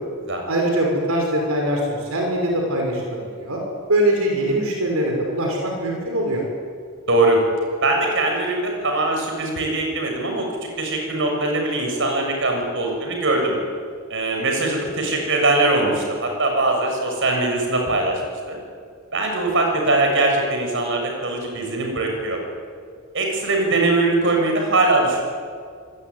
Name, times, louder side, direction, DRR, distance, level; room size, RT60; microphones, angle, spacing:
voice 1, 0.5-3.6 3.9-6.4, right 1 dB, 85° right, 0 dB, 6.2 m, -22 dB
voice 2, 7.1-7.5 7.8-10.5 10.8-13.6 14.1-18.2 18.5-18.6 19.1-22.4 23.1-25.2, right 2 dB, 60° right, 2 dB, 7.0 m, -21 dB
26.5 x 21.5 x 9.8 m, 2.1 s
head